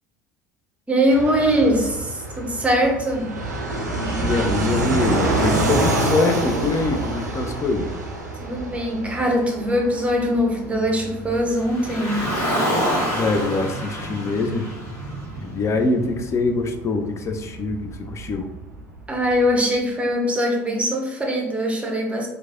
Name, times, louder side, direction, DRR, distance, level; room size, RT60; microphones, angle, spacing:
voice 1, 0.9-3.3 8.4-12.2 19.1-22.3, equal, 15° right, 1 dB, 0.7 m, -22 dB
Fixed-wing aircraft airplane, 1.1-19.5, right 2 dB, 85° right, 0.4 m, -28 dB
voice 2, 4.2-7.9 13.1-14.7 15.4-18.4, left 3 dB, 30° left, 5 dB, 0.4 m, -24 dB
Car, 11.5-15.9, equal, 65° left, 0.9 m, -26 dB
3.1 x 2.2 x 2.4 m, 0.95 s
figure-of-eight pair, 65°, 9 cm